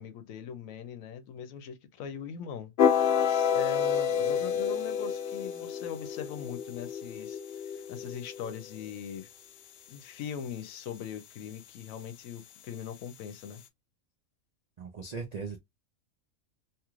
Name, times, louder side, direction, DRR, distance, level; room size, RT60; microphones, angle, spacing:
voice 1, 0.0-2.7 3.3-9.3 9.9-13.6, left 7 dB, 80° left, 1.0 m, -41 dB
sound 1, 2.8-8.9, left 7 dB, 60° left, 0.7 m, -29 dB
voice 2, 14.8-15.6, right 5 dB, 70° right, 0.4 m, -38 dB
3.0 x 2.4 x 2.9 m
omnidirectional pair, 1.4 m